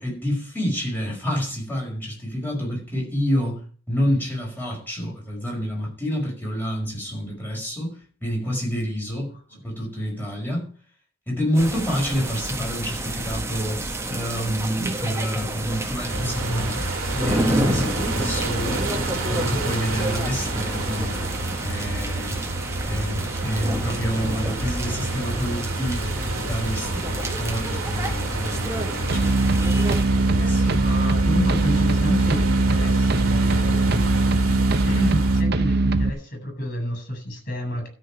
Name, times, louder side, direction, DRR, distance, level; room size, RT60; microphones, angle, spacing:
voice 1, 0.0-3.6 3.9-9.3 9.6-10.7 11.3-16.8 17.2-18.8 19.3-21.2 21.6-22.4 22.8-29.4 30.1-30.6, equal, 10° left, 5.5 m, -28 dB
sound 1, 11.5-30.0, right 1 dB, 15° right, 1.6 m, -30 dB
sound 2, 16.1-35.4, right 2 dB, 80° right, 2.2 m, -29 dB
voice 2, 16.2-16.8 17.0-17.6 30.4-37.9, equal, 40° left, 8.0 m, -30 dB
sound 3, 29.1-36.1, right 2 dB, 50° right, 0.8 m, -21 dB
13.0 x 5.6 x 9.2 m
head